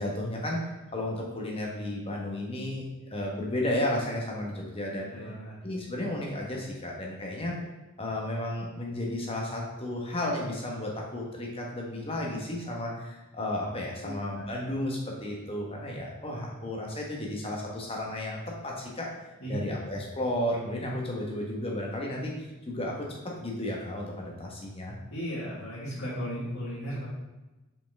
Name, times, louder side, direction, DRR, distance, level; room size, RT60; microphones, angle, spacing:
voice 1, 0.0-5.1 5.6-7.6 8.0-25.0, left 1 dB, 25° left, -2 dB, 1.2 m, -33 dB
voice 2, 5.1-5.6 14.0-14.2 19.4-19.9 25.1-27.1, equal, 60° left, -11 dB, 1.8 m, -35 dB
5.4 x 5.0 x 3.5 m, 1.1 s
head